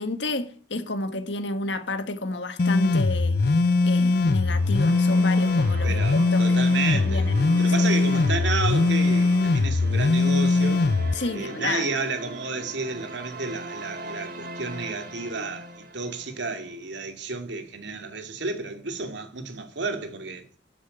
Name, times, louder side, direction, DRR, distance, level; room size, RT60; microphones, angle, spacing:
voice 1, 0.0-3.4 3.8-7.4 7.8-7.9 11.1-11.9, left 2 dB, 70° left, 1.6 m, -31 dB
sound 1, 2.6-11.1, left 3 dB, 55° left, 0.6 m, -21 dB
sound 2, 4.3-16.7, right 1 dB, 50° right, 2.4 m, -40 dB
voice 2, 5.8-7.3 7.6-10.9 11.3-20.5, right 3 dB, 70° right, 2.4 m, -31 dB
12.0 x 8.5 x 8.3 m
head